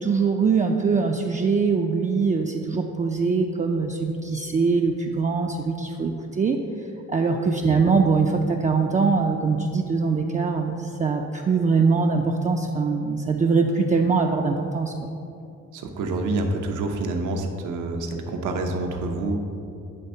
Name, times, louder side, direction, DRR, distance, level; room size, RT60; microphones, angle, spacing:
voice 1, 0.0-6.6 7.1-15.1, right 4 dB, 25° right, 1 dB, 0.4 m, -22 dB
voice 2, 15.7-19.4, right 2 dB, 80° right, 3 dB, 0.8 m, -27 dB
8.9 x 3.4 x 5.5 m, 2.6 s
cardioid pair, 90°, 30 cm